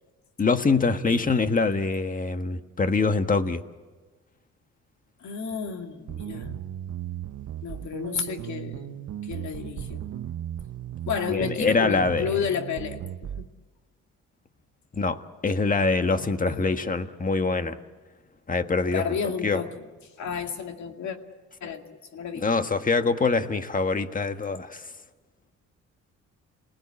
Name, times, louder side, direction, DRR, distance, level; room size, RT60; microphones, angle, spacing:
voice 1, 0.4-3.6 11.3-12.4 15.0-17.8 18.5-19.2 19.4-19.6 22.3-24.8, left 4 dB, 25° left, 8 dB, 1.5 m, -24 dB
voice 2, 5.2-6.6 7.6-10.1 11.0-13.5 16.0-16.6 18.8-19.8 20.2-21.2 21.6-22.4, left 7 dB, 70° left, 5 dB, 2.4 m, -32 dB
sound 1, 6.1-13.5, right 11 dB, 60° right, 0.8 m, -36 dB
29.0 x 19.0 x 8.7 m, 1.3 s
cardioid pair, 90°, 30 cm